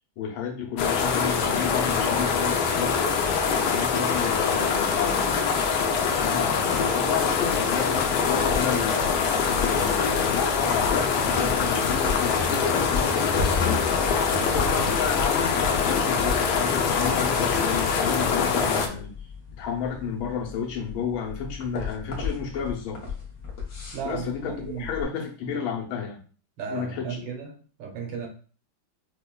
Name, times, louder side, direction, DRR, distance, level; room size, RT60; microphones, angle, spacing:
voice 1, 0.2-3.1 3.7-5.2 6.2-9.0 9.4-13.8 14.5-19.1 19.6-23.0 24.0-26.2 26.7-27.2, left 7 dB, 90° left, 0 dB, 1.6 m, -31 dB
sound 1, 0.8-18.9, left 5 dB, 75° left, 1.0 m, -24 dB
sound 2, 7.4-25.0, left 5 dB, 50° left, 1.0 m, -36 dB
voice 2, 23.9-24.9 26.6-28.3, right 7 dB, 85° right, 2 dB, 1.7 m, -35 dB
5.7 x 2.2 x 2.2 m, 0.39 s
omnidirectional pair, 2.2 m